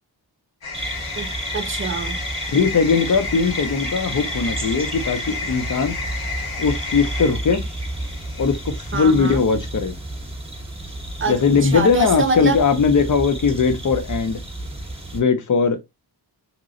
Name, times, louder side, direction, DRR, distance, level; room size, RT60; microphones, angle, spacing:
sound 1, 0.6-9.4, left 3 dB, 75° left, 1.6 m, -32 dB
sound 2, 0.7-15.2, right 1 dB, 15° right, 0.9 m, -31 dB
voice 1, 1.5-2.2 8.9-9.4 11.2-12.6, right 4 dB, 30° right, 0.5 m, -25 dB
voice 2, 2.5-5.9 6.6-7.6 8.4-9.9 11.3-14.4 15.1-15.8, left 5 dB, 45° left, 0.6 m, -19 dB
3.0 x 2.9 x 2.5 m
wide cardioid pair, 150°, 43 cm